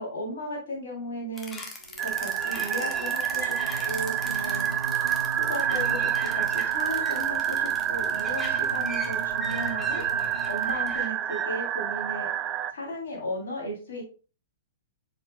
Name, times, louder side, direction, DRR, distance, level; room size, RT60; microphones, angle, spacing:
voice 1, 0.0-1.6 2.0-3.6 3.8-4.7 5.3-10.2 10.5-12.3 12.7-14.0, equal, 60° left, -2 dB, 3.5 m, -35 dB
sound 1, 1.4-11.4, left 2 dB, 15° left, 1.6 m, -41 dB
sound 2, 1.8-11.0, right 2 dB, 70° right, 0.7 m, -40 dB
sound 3, 2.0-12.7, right 10 dB, 25° right, 0.4 m, -28 dB
7.8 x 6.7 x 2.3 m, 0.36 s
figure-of-eight pair, 105°, 0 cm